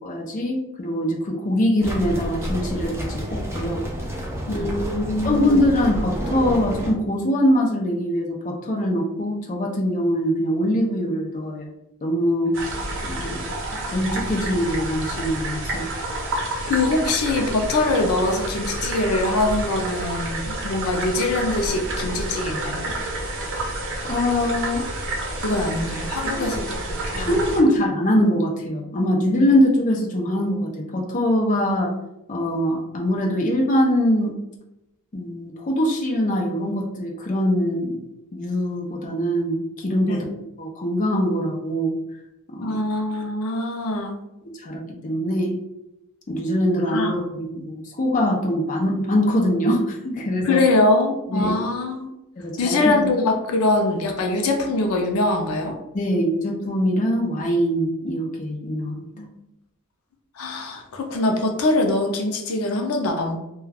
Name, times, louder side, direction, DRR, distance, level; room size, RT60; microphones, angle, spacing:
voice 1, 0.0-3.8 4.5-4.6 5.2-11.7 12.0-13.4 13.7-15.9 24.0-24.9 26.4-26.5 27.2-31.9 32.3-34.4 35.1-38.0 38.3-40.3 40.6-41.9 42.5-42.8 44.6-45.5 46.3-50.6 51.3-51.6 52.4-53.1 55.9-59.0, equal, 35° left, 0 dB, 0.5 m, -23 dB
sound 1, 1.8-6.9, equal, 10° right, 0.5 m, -29 dB
voice 2, 4.5-5.7 16.7-22.9 25.4-27.4 40.1-40.3 42.6-44.2 46.9-47.2 50.4-52.1 52.6-55.8 59.2-59.3 60.4-63.4, left 2 dB, 85° left, 3 dB, 0.5 m, -23 dB
sound 2, 12.5-27.6, right 2 dB, 60° right, 0.7 m, -29 dB
2.3 x 2.2 x 3.3 m, 0.89 s
head